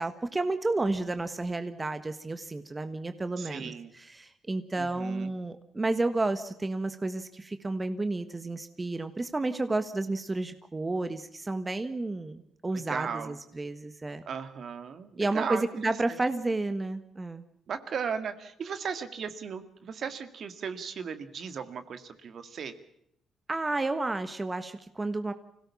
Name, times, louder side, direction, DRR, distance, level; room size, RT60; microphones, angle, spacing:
voice 1, 0.0-14.2 15.2-17.4 23.5-25.3, right 2 dB, 20° right, 9 dB, 1.4 m, -31 dB
voice 2, 3.4-3.9 4.8-5.3 12.9-13.3 14.3-15.9 17.7-22.7, right 6 dB, 55° right, 10 dB, 2.0 m, -36 dB
25.5 x 17.5 x 7.2 m, 0.75 s
cardioid pair, 90°, 0 cm